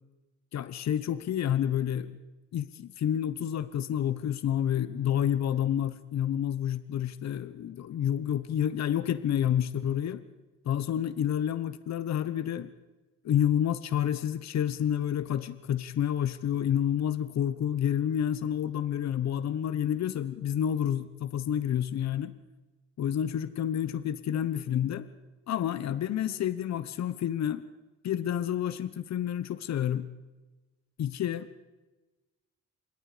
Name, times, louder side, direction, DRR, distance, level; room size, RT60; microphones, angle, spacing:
voice 1, 0.5-2.1 2.5-10.2 10.6-12.7 13.2-22.3 23.0-25.1 25.5-27.6 28.0-30.1 31.0-31.5, left 10 dB, 60° left, 14 dB, 1.1 m, -29 dB
27.0 x 22.0 x 5.1 m, 1.1 s
cardioid pair, 90°, 30 cm